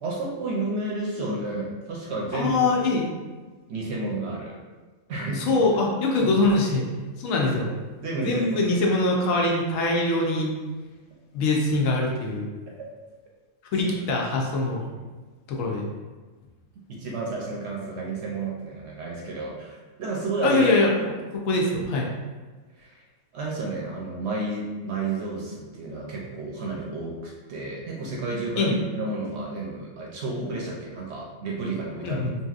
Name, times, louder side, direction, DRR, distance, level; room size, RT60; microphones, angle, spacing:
voice 1, 0.0-2.5 3.7-4.6 5.1-5.6 6.2-6.3 8.0-8.7 16.9-20.6 22.7-23.0 23.3-32.2, right 2 dB, 65° right, -3 dB, 0.7 m, -31 dB
voice 2, 2.3-3.1 5.4-6.9 7.2-7.7 8.2-10.5 11.3-12.5 13.7-14.9 15.5-15.9 20.4-22.1 28.6-28.7 32.0-32.4, left 2 dB, 80° left, -1 dB, 1.0 m, -23 dB
2.9 x 2.7 x 2.3 m, 1.3 s
omnidirectional pair, 1.4 m